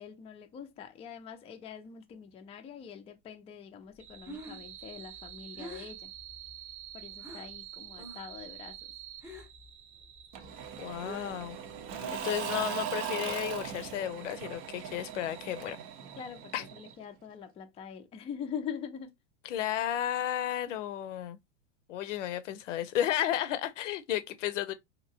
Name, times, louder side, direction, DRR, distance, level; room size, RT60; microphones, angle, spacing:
voice 1, 0.0-6.1 6.9-8.8 16.2-19.1, left 7 dB, 15° left, 0.5 m, -43 dB
Breathing, 4.0-7.6 7.9-8.4 8.7-9.7 10.0-12.6, left 1 dB, 5° right, 0.9 m, -47 dB
sound 1, 4.0-17.0, right 12 dB, 70° right, 0.7 m, -50 dB
Engine / Mechanisms / Drill, 10.3-17.0, right 8 dB, 35° right, 0.6 m, -39 dB
voice 2, 10.8-11.6 12.1-15.8 16.5-16.6 19.4-21.4 21.9-24.7, left 12 dB, 80° left, 0.7 m, -33 dB
2.9 x 2.8 x 2.7 m
supercardioid pair, 125°, 37 cm